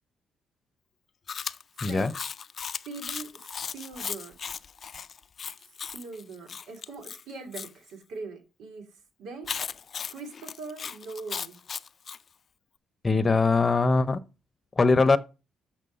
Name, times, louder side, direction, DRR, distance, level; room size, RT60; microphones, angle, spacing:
Chewing mastication, 1.3-7.7 9.4-12.2, left 6 dB, 45° left, 0.4 m, -37 dB
voice 1, 1.8-2.1 13.0-14.2 14.8-15.2, left 3 dB, 25° left, 0.8 m, -21 dB
voice 2, 2.9-4.4 5.9-8.9 9.2-9.5 10.1-11.6, right 3 dB, 80° right, 2.9 m, -41 dB
6.8 x 6.0 x 6.5 m
cardioid pair, 90°, 0 cm